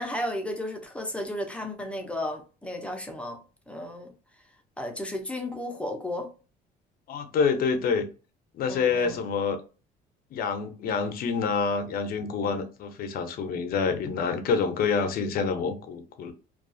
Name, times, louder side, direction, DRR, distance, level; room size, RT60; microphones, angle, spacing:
voice 1, 0.0-3.4 3.7-4.1 4.8-6.3 8.7-9.2, left 1 dB, 5° left, 0.6 m, -33 dB
voice 2, 7.1-8.1 8.5-9.6 10.3-16.3, left 5 dB, 60° left, 0.6 m, -27 dB
2.4 x 2.3 x 2.5 m
cardioid pair, 110°, 17 cm